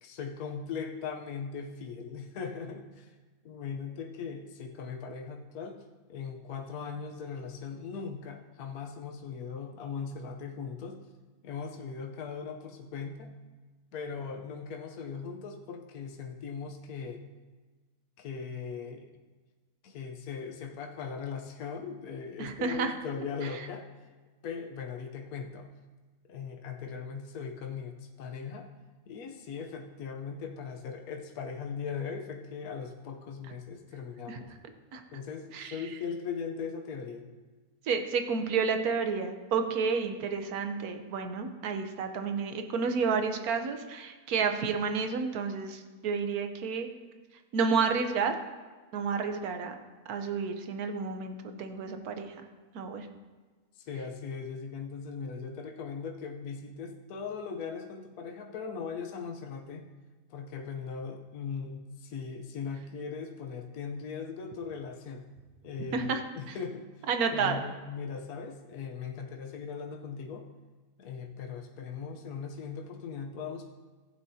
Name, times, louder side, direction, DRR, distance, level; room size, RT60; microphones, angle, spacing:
voice 1, 0.0-3.2 3.4-5.8 6.1-11.1 11.4-13.4 13.9-17.2 18.2-19.1 19.8-23.9 24.4-25.7 26.3-28.7 29.1-34.5 35.1-37.3 53.7-59.9 60.3-65.2 65.6-66.1 66.4-70.5 71.0-73.7, left 6 dB, 75° left, 2 dB, 1.3 m, -39 dB
voice 2, 22.4-22.9 23.5-23.7 34.3-34.4 34.9-35.0 35.5-35.8 37.8-46.9 47.5-48.3 48.9-49.7 50.1-52.3 52.7-53.1 65.9-66.2 66.5-66.6 67.1-67.6, right 5 dB, 75° right, 6 dB, 1.3 m, -30 dB
15.5 x 9.0 x 2.8 m, 1.3 s
omnidirectional pair, 1.6 m